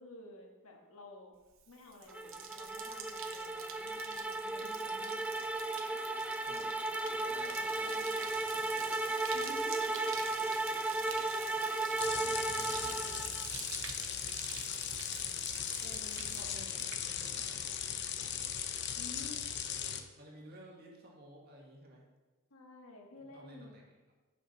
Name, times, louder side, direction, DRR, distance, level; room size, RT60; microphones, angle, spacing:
voice 1, 0.0-1.4 1.7-5.2 9.3-10.2 11.1-13.6 15.8-16.3 19.0-19.4 22.5-23.8, left 2 dB, 75° left, 1 dB, 1.6 m, -52 dB
Bathtub (filling or washing), 1.5-17.6 17.9-18.4, right 8 dB, 65° right, 0.9 m, -47 dB
sound 1, 2.1-13.5, right 2 dB, 5° right, 0.3 m, -35 dB
voice 2, 7.1-9.1 16.2-17.8 18.2-18.5 19.7-22.1 23.2-23.9, right 1 dB, 45° right, -2 dB, 2.1 m, -55 dB
sound 2, 12.0-20.0, left 9 dB, 55° left, 0.7 m, -38 dB
11.0 x 6.3 x 4.0 m, 1.3 s
head